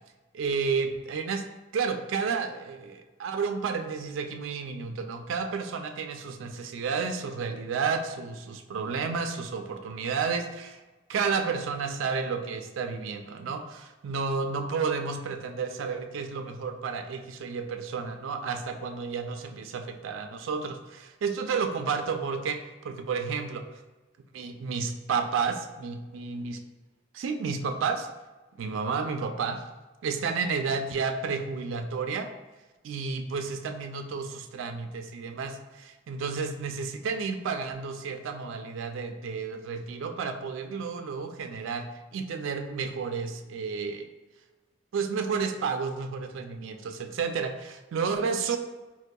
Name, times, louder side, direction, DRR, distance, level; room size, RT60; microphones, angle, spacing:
voice 1, 0.3-1.4 1.7-10.8 11.1-23.6 24.3-26.6 27.1-28.1 28.6-29.6 30.0-32.3 32.8-44.1 44.9-48.6, right 5 dB, 85° right, 6 dB, 0.3 m, -31 dB
4.4 x 2.7 x 2.2 m, 1.2 s
head